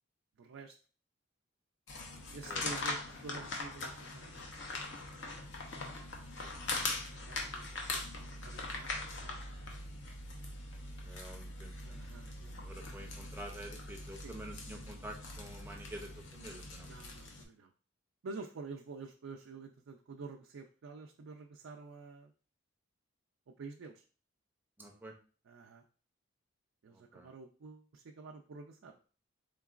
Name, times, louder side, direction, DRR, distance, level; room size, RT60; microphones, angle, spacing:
voice 1, 0.4-0.8 2.3-5.1 7.3-7.8 8.4-9.4 11.8-12.9 14.2-14.4 16.7-17.7 18.2-22.3 23.5-24.0 25.4-25.8 26.8-29.0, right 4 dB, 80° right, 1 dB, 0.4 m, -49 dB
sound 1, 1.9-17.4, left 2 dB, 60° left, 0.7 m, -42 dB
voice 2, 11.0-12.0 12.6-16.9 24.8-25.1 26.9-27.3, right 1 dB, 10° right, 2 dB, 0.5 m, -48 dB
3.8 x 3.7 x 2.4 m, 0.39 s
head